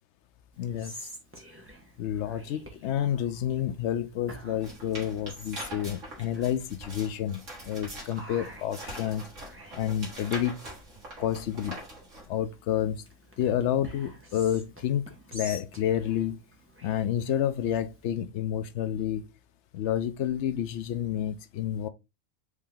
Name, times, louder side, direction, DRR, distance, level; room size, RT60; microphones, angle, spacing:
Whispering, 0.5-18.1, right 1 dB, 10° right, 1.0 m, -49 dB
voice 1, 0.6-0.9 2.0-9.3 9.7-10.6 11.2-11.8 12.3-13.0 13.4-15.0 15.3-16.4 16.8-19.3 19.7-21.9, left 10 dB, 70° left, 0.8 m, -29 dB
sound 1, 4.6-12.3, right 1 dB, 70° right, 2.3 m, -43 dB
4.9 x 2.8 x 3.6 m
omnidirectional pair, 1.4 m